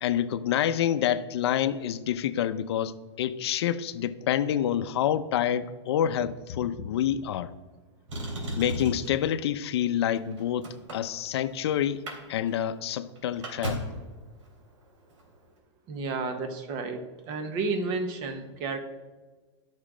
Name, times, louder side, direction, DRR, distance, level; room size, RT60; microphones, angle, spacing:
voice 1, 0.0-7.5 8.6-12.0 12.3-13.8, left 10 dB, 60° left, 12 dB, 0.6 m, -27 dB
Motor vehicle (road), 8.1-9.2 10.0-11.6 11.9-12.2 12.5-12.6 12.9-14.0 15.1-15.2, equal, 75° right, 2.9 m, -35 dB
voice 2, 15.9-18.8, right 3 dB, 30° right, 8 dB, 1.0 m, -31 dB
12.0 x 6.4 x 4.9 m, 1.3 s
supercardioid pair, 170°, 15 cm